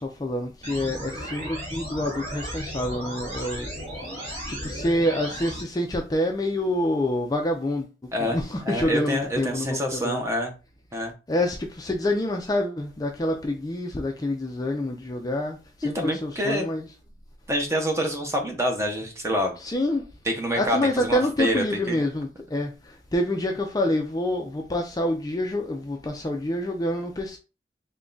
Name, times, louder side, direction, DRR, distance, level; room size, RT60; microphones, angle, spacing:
voice 1, 0.0-3.7 4.5-7.9 8.2-10.2 11.3-15.6 15.8-16.9 19.6-20.0 20.6-22.7 23.1-27.4, left 1 dB, 20° left, 0.4 m, -27 dB
sound 1, 0.6-5.6, equal, 40° right, 1.8 m, -35 dB
voice 2, 8.1-10.5 10.9-11.1 15.9-16.7 17.5-19.6 20.2-22.0, equal, 15° right, 0.7 m, -27 dB
3.5 x 2.2 x 3.8 m
head